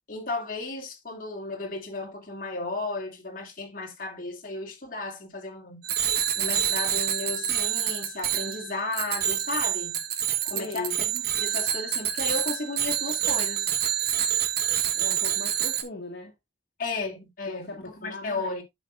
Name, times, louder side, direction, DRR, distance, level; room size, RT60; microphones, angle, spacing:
voice 1, 0.1-5.8 6.3-10.0 10.4-13.7 16.8-18.6, left 3 dB, 45° left, 2.5 m, -34 dB
Bicycle bell, 5.8-15.8, right 10 dB, 55° right, 1.3 m, -27 dB
voice 2, 10.5-11.0 14.9-16.3 17.5-18.6, left 2 dB, 60° left, 1.9 m, -38 dB
8.8 x 7.6 x 2.5 m
head